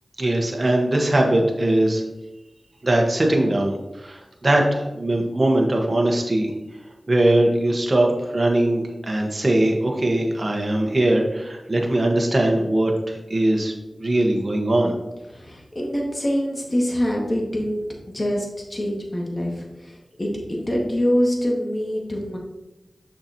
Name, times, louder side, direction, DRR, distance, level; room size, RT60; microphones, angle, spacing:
voice 1, 0.2-2.0 2.8-6.5 7.1-13.7 14.0-14.9, right 1 dB, 45° right, 1 dB, 1.2 m, -20 dB
voice 2, 15.3-17.8 18.1-22.4, equal, 40° left, -1 dB, 1.9 m, -25 dB
6.6 x 5.8 x 2.9 m, 1.0 s
cardioid pair, 40°, 0 cm